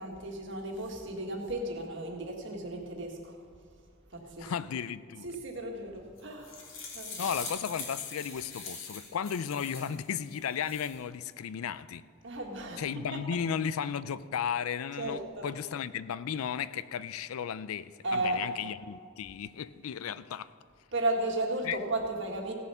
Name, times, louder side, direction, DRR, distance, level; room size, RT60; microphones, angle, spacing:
voice 1, 0.0-3.4 4.1-4.5 5.2-7.3 12.2-13.2 15.0-15.5 18.0-18.4 20.9-22.5, right 2 dB, 60° right, 1.7 m, -34 dB
voice 2, 4.4-5.3 7.2-12.0 12.8-20.5 21.6-21.8, left 7 dB, 90° left, 0.4 m, -35 dB
sound 1, 6.2-10.0 10.4-11.0, left 4 dB, 65° left, 2.2 m, -42 dB
16.5 x 7.1 x 5.5 m
head